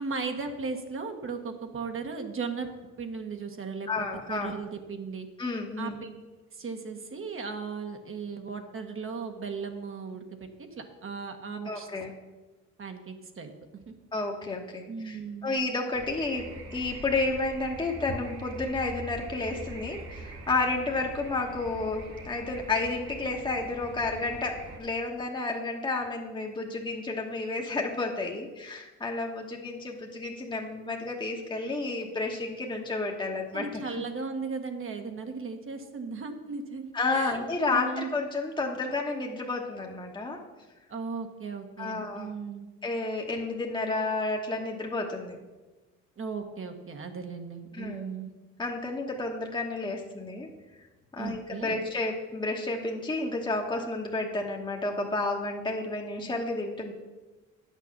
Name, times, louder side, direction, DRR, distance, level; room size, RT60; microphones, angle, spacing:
voice 1, 0.0-2.7 3.0-5.3 5.8-6.1 6.5-11.9 12.8-13.5 13.9-14.0 14.9-15.6 33.5-38.1 40.9-42.7 46.2-48.3 51.2-51.7, right 4 dB, 45° right, 5 dB, 1.3 m, -37 dB
voice 2, 3.9-4.5 5.4-6.0 11.6-12.1 14.1-15.2 15.4-33.9 36.9-40.4 41.8-42.3 42.8-45.4 47.7-48.0 48.6-50.5 51.1-56.9, left 3 dB, 15° left, 0 dB, 1.2 m, -31 dB
sound 1, 15.9-24.8, right 2 dB, 60° right, 2.6 m, -43 dB
9.1 x 6.6 x 6.5 m, 1.2 s
cardioid pair, 90°, 30 cm